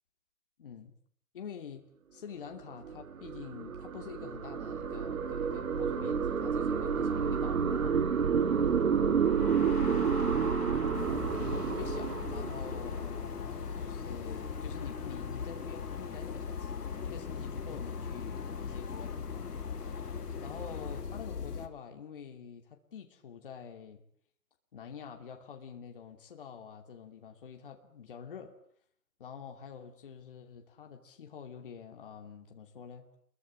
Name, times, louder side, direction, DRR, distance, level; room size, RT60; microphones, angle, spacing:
voice 1, 0.6-0.9 1.3-8.0 10.6-11.0 11.7-19.5 20.4-24.0 24.7-28.5 29.2-33.1, left 7 dB, 35° left, 3 dB, 2.7 m, -47 dB
sound 1, 2.6-13.2, right 6 dB, 60° right, 2.2 m, -30 dB
sound 2, 6.4-6.5 6.7-21.0, left 5 dB, 65° left, 7.4 m, -49 dB
sound 3, 10.9-21.7, left 6 dB, 90° left, 4.1 m, -39 dB
29.0 x 22.5 x 8.6 m, 0.65 s
hypercardioid pair, 180°, 47 cm